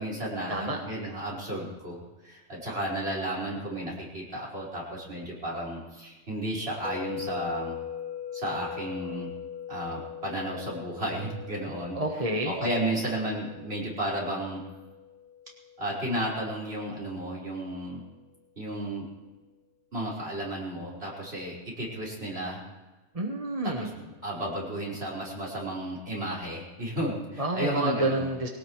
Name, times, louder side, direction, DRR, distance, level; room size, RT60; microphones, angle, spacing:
voice 1, 0.0-7.8 8.3-9.3 9.7-12.0 12.4-14.6 15.8-18.0 18.6-19.0 19.9-22.6 23.6-28.3, right 1 dB, 55° right, -4 dB, 5.5 m, -33 dB
sound 1, 6.8-16.9, left 9 dB, 75° left, 4.6 m, -41 dB
voice 2, 11.9-12.5 23.1-23.9 27.4-28.5, right 2 dB, 30° right, 2 dB, 1.3 m, -28 dB
22.5 x 18.0 x 3.2 m, 1.2 s
omnidirectional pair, 1.2 m